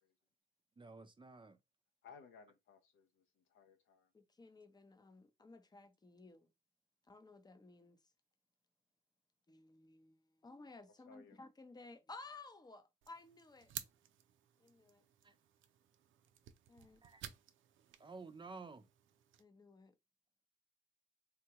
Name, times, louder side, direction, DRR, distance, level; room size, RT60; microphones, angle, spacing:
voice 1, 0.8-1.6 15.2-15.3 17.0-17.2 18.0-18.9, right 3 dB, 25° right, 0.5 m, -52 dB
voice 2, 2.0-4.1 11.1-11.4, left 6 dB, 90° left, 0.8 m, -61 dB
voice 3, 4.1-6.5 7.1-8.0 9.5-10.2 10.4-13.7 14.6-15.0 16.7-17.0 19.4-19.9, left 3 dB, 20° left, 0.6 m, -56 dB
sound 1, 13.0-19.4, right 10 dB, 85° right, 0.5 m, -54 dB
3.6 x 2.2 x 2.9 m
cardioid pair, 95°, 20 cm